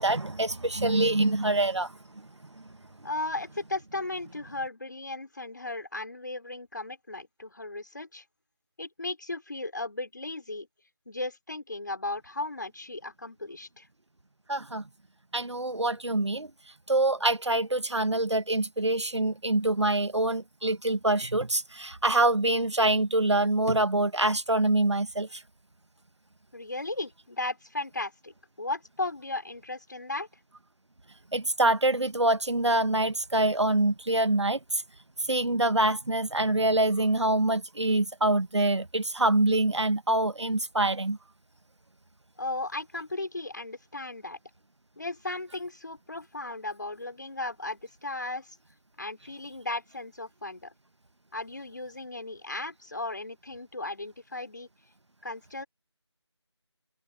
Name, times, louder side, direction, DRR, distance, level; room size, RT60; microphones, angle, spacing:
voice 1, 0.0-1.9 14.5-14.8 15.3-16.5 16.9-25.4 31.3-34.8 35.3-41.2, right 2 dB, 70° right, 1.8 m, -25 dB
voice 2, 3.0-8.2 8.8-10.7 11.1-13.9 26.5-30.3 42.4-44.4 45.0-48.6 49.0-50.7 51.3-54.7 55.2-55.6, left 2 dB, 40° left, 5.9 m, -36 dB
figure-of-eight pair, 180°, 15 cm